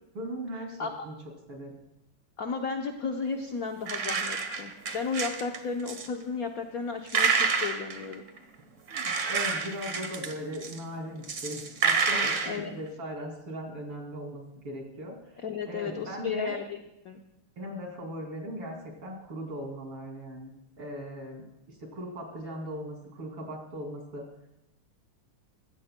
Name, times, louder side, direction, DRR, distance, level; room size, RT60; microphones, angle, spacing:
voice 1, 0.2-1.1 1.5-1.7 8.9-16.6 17.6-24.3, equal, 80° right, 1 dB, 3.6 m, -39 dB
voice 2, 2.4-8.2 12.4-12.8 15.4-17.2, left 5 dB, 55° left, 3 dB, 1.0 m, -34 dB
sound 1, 3.9-5.6 5.9-6.1 7.1-8.4 8.9-10.8 11.2-12.6, right 5 dB, 45° right, 1.2 m, -28 dB
21.5 x 16.0 x 2.2 m, 0.84 s
omnidirectional pair, 2.4 m